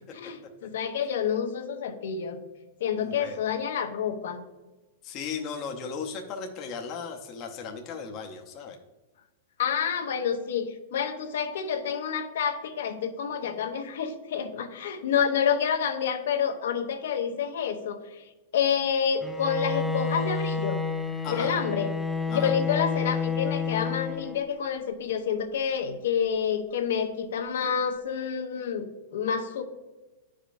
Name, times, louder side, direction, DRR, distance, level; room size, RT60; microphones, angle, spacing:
voice 1, 0.1-2.4 2.8-4.4 9.6-18.2 18.5-20.8 21.3-21.9 22.3-29.6, left 7 dB, 80° left, 6 dB, 0.8 m, -28 dB
voice 2, 3.0-3.4 5.0-8.8 21.2-21.5 22.3-22.5, left 6 dB, 35° left, 2 dB, 0.7 m, -36 dB
Bowed string instrument, 19.2-24.6, left 5 dB, 5° left, 0.3 m, -30 dB
10.0 x 5.0 x 2.5 m, 1.1 s
supercardioid pair, 155°, 0 cm